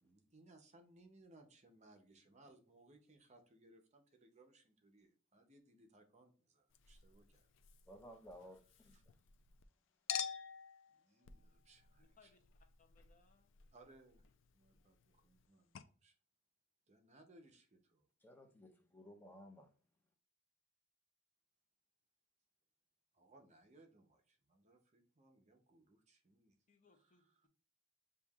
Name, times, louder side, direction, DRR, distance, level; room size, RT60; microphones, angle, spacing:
voice 1, 0.0-7.5 8.8-9.0 10.9-12.3 13.7-14.3 14.5-16.2 16.9-18.1 23.1-26.5 27.0-27.4, right 2 dB, 35° right, 0.7 m, -66 dB
Chink clink, 6.7-9.7 10.1-15.5 15.8-15.9, left 8 dB, 70° left, 0.4 m, -49 dB
voice 2, 7.9-9.0 18.2-19.7, equal, 10° left, 0.7 m, -57 dB
voice 3, 12.0-12.4 12.8-13.6 26.7-27.5, left 4 dB, 40° left, 0.7 m, -71 dB
6.9 x 2.7 x 2.4 m
head